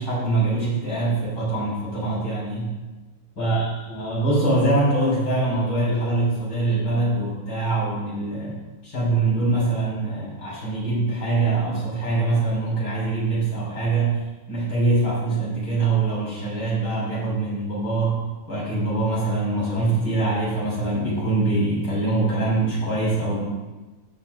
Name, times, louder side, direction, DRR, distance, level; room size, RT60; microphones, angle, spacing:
voice 1, 0.0-2.7 3.4-14.2 14.5-18.2 18.5-23.4, right 2 dB, 75° left, -7 dB, 4.2 m, -23 dB
14.0 x 7.1 x 2.3 m, 1.2 s
omnidirectional pair, 2.0 m